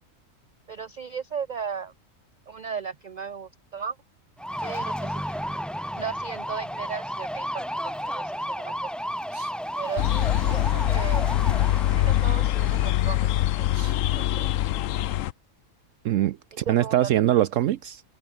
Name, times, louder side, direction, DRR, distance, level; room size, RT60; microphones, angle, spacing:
voice 1, 0.7-1.9 2.5-4.0 4.6-5.5 6.0-8.9 9.8-11.3 11.7-13.3 13.6-14.5 16.7-17.2, right 6 dB, 50° right, 0.5 m, -36 dB
sound 1, 4.4-12.9, equal, ahead, 2.3 m, -33 dB
sound 2, 10.0-15.3, left 13 dB, 75° left, 1.0 m, -23 dB
voice 2, 16.0-18.0, right 12 dB, 75° right, 1.0 m, -24 dB
open air
omnidirectional pair, 1.4 m